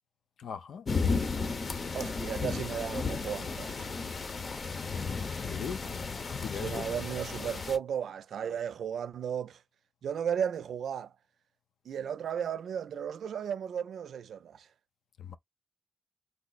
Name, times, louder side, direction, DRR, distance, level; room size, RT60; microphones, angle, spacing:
voice 1, 0.4-0.8 5.4-5.8 6.4-6.8 15.2-15.4, left 7 dB, 85° left, 0.5 m, -39 dB
sound 1, 0.9-7.8, left 4 dB, 50° left, 0.7 m, -34 dB
voice 2, 1.9-4.0 6.5-9.6 10.0-11.1 11.9-14.7, right 8 dB, 85° right, 0.3 m, -35 dB
3.2 x 2.0 x 4.0 m
cardioid pair, 90°, 0 cm